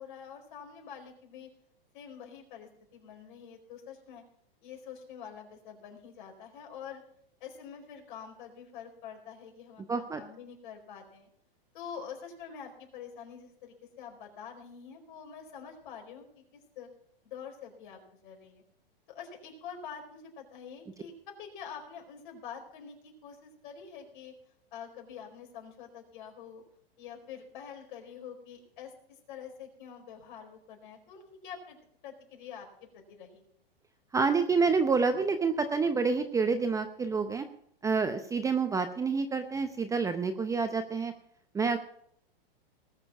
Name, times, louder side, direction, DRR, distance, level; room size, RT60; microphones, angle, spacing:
voice 1, 0.0-1.5 1.9-4.2 4.6-7.0 7.4-11.3 11.7-16.9 17.2-18.6 19.1-24.3 24.7-26.6 27.0-31.8 32.0-33.4, left 7 dB, 55° left, 1 dB, 4.7 m, -46 dB
voice 2, 9.9-10.2 34.1-37.5 37.8-41.1 41.5-41.8, right 4 dB, 10° right, 9 dB, 0.6 m, -28 dB
19.5 x 6.9 x 5.9 m, 0.67 s
hypercardioid pair, 135°, 30 cm